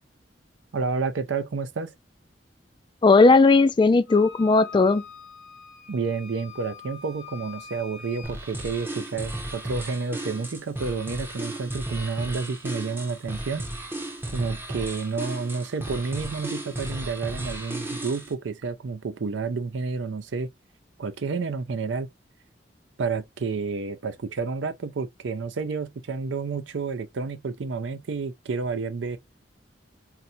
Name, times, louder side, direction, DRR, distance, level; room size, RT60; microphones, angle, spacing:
voice 1, 0.7-1.9 5.9-13.7 14.3-20.5 21.0-22.1 23.0-29.2, right 4 dB, 75° right, 0.5 m, -30 dB
voice 2, 3.0-5.0, left 3 dB, 25° left, 0.3 m, -17 dB
Wind instrument woodwind instrument, 4.1-8.4, left 6 dB, 70° left, 0.9 m, -44 dB
sound 1, 8.2-18.3, right 1 dB, 10° right, 0.7 m, -35 dB
4.1 x 2.1 x 2.6 m
head